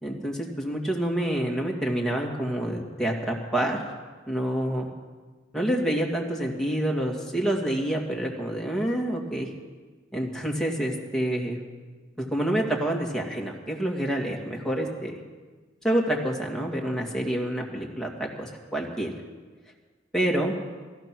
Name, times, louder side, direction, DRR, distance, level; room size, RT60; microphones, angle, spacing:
voice 1, 0.0-3.8 4.3-4.9 5.5-9.5 10.1-11.6 12.2-15.2 15.8-19.1 20.1-20.5, right 1 dB, 5° left, -2 dB, 2.1 m, -27 dB
15.0 x 14.0 x 6.1 m, 1.4 s
head